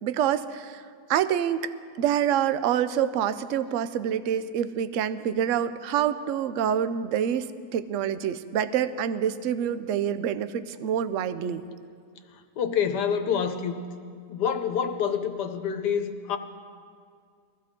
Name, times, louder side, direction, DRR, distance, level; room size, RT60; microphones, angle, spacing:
voice 1, 0.0-1.6 2.0-11.7, right 9 dB, 65° right, 12 dB, 0.8 m, -27 dB
voice 2, 12.6-13.8 14.3-16.4, left 7 dB, 80° left, 7 dB, 1.5 m, -27 dB
22.0 x 15.0 x 3.7 m, 2.2 s
omnidirectional pair, 1.8 m